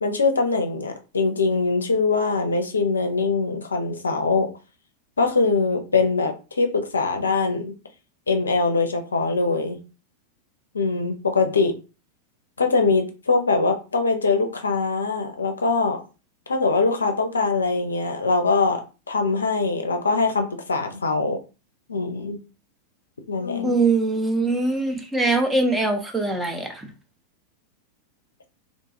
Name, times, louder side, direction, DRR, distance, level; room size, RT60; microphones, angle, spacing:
voice 1, 0.0-4.5 5.2-7.7 8.3-9.8 10.7-11.7 12.6-16.0 16.5-18.8 19.1-21.4 21.9-22.4 23.3-23.9, left 4 dB, 75° left, 5 dB, 0.5 m, -22 dB
voice 2, 23.6-26.9, right 3 dB, 10° right, 4 dB, 0.6 m, -22 dB
2.7 x 2.3 x 2.7 m, 0.32 s
figure-of-eight pair, 90°, 0 cm